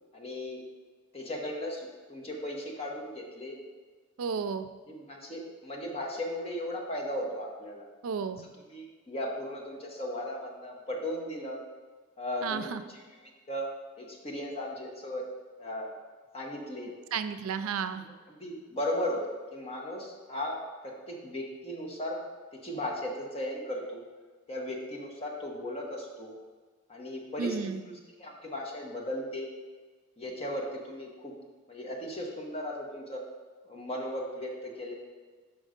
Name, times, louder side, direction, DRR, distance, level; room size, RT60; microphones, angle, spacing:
voice 1, 0.1-0.6 1.1-3.6 4.9-7.9 8.4-11.6 12.2-13.0 13.5-13.7 14.0-15.3 15.6-15.9 16.3-16.9 18.3-20.6 20.8-22.2 22.5-24.0 24.5-26.3 26.9-27.9 28.2-29.5 30.2-31.3 31.7-33.2 33.6-34.9, left 1 dB, 30° left, -1 dB, 1.1 m, -36 dB
voice 2, 4.2-4.7 8.0-8.4 12.4-12.8 17.1-18.1 27.4-27.8, right 6 dB, 80° right, 11 dB, 0.4 m, -32 dB
6.0 x 5.3 x 5.1 m, 1.4 s
head